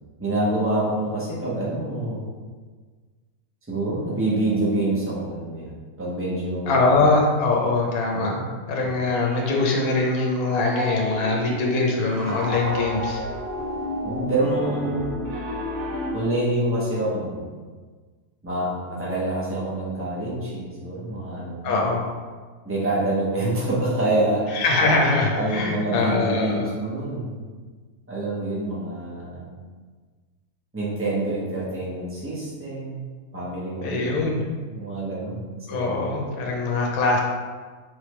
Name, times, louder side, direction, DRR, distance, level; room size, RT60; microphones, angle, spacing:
voice 1, 0.2-2.2 3.7-6.8 8.1-8.5 14.0-15.1 16.1-17.5 18.4-21.8 22.6-24.6 25.3-27.4 28.1-29.5 30.7-33.0 33.3-34.4 34.7-35.4 35.7-36.0, right 2 dB, 10° right, -7 dB, 0.8 m, -26 dB
voice 2, 6.7-8.3 8.7-13.2 21.6-22.0 24.5-26.7 33.8-34.4 35.7-37.2, left 3 dB, 70° left, -1 dB, 1.2 m, -22 dB
Piano, 9.1-16.1, left 1 dB, 50° right, 0.9 m, -31 dB
4.0 x 3.3 x 3.1 m, 1.5 s
omnidirectional pair, 1.5 m